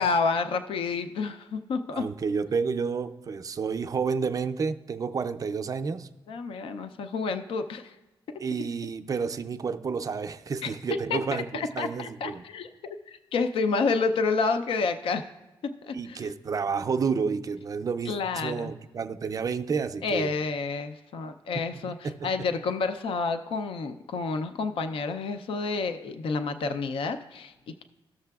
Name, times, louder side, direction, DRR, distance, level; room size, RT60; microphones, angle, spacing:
voice 1, 0.0-2.0 6.3-7.9 10.6-10.7 11.1-15.3 15.6-16.3 18.1-18.7 20.0-27.8, left 4 dB, 70° left, 9 dB, 0.5 m, -29 dB
voice 2, 1.9-6.1 8.4-12.4 15.9-20.3 22.0-22.5, right 5 dB, 40° right, 9 dB, 0.4 m, -30 dB
14.5 x 6.6 x 2.3 m, 1.1 s
cardioid pair, 115°, 10 cm